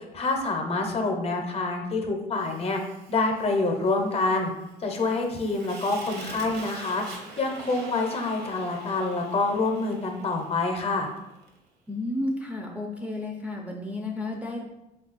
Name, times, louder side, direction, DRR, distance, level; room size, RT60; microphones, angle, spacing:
voice 1, 0.1-2.8 3.1-4.5 4.8-7.0 7.4-11.1, left 3 dB, 35° left, 3 dB, 0.6 m, -26 dB
Fire, 2.3-11.6, right 3 dB, 70° right, 0.7 m, -45 dB
voice 2, 11.9-14.6, left 2 dB, 10° right, 0 dB, 0.4 m, -32 dB
3.1 x 2.3 x 4.0 m, 0.93 s
cardioid pair, 110°, 17 cm